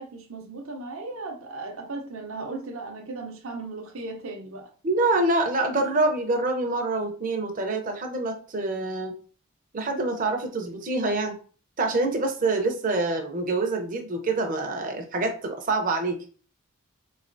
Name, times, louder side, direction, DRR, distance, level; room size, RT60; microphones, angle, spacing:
voice 1, 0.0-4.7 12.4-12.5, right 3 dB, 70° right, 2 dB, 0.7 m, -37 dB
voice 2, 4.8-9.1 9.7-11.4 11.8-16.3, right 2 dB, 40° right, 3 dB, 0.6 m, -26 dB
3.7 x 3.1 x 2.6 m, 0.39 s
head